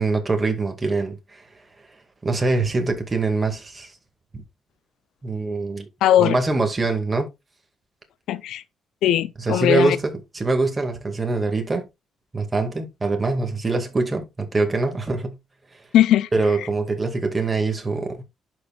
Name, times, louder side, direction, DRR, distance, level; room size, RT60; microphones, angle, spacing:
voice 1, 0.0-1.4 2.2-3.9 5.2-5.9 6.2-7.3 9.4-11.9 12.3-15.4 16.3-18.2, right 3 dB, 25° right, 2.1 m, -23 dB
voice 2, 6.0-6.4 8.3-8.6 9.0-10.0 15.9-16.3, left 12 dB, 85° left, 0.5 m, -18 dB
11.5 x 4.5 x 2.4 m
cardioid pair, 90°, 0 cm